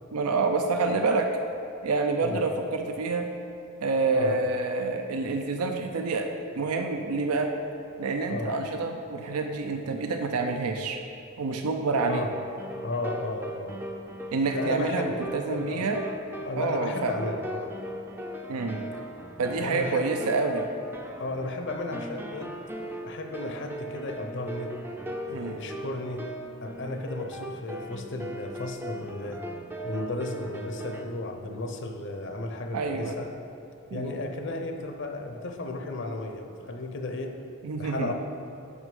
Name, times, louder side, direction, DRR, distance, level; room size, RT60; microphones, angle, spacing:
voice 1, 0.1-1.3 1.8-3.3 3.8-6.3 6.6-7.5 8.0-11.0 11.4-12.2 14.3-16.0 16.6-17.1 18.5-18.8 19.4-20.6 25.3-25.6 32.7-33.2 33.9-34.2 37.6-38.1, right 3 dB, 90° right, 5 dB, 0.5 m, -27 dB
sound 1, 11.8-31.0, right 1 dB, 10° right, 0.4 m, -39 dB
voice 2, 12.8-13.8 14.5-15.2 15.5-15.9 16.4-17.7 19.6-20.1 21.2-22.5 23.0-24.7 25.3-26.3 26.6-29.4 29.8-33.3 33.9-37.4 37.8-38.1, left 2 dB, 55° left, 4 dB, 0.6 m, -34 dB
6.2 x 6.2 x 5.4 m, 2.8 s
head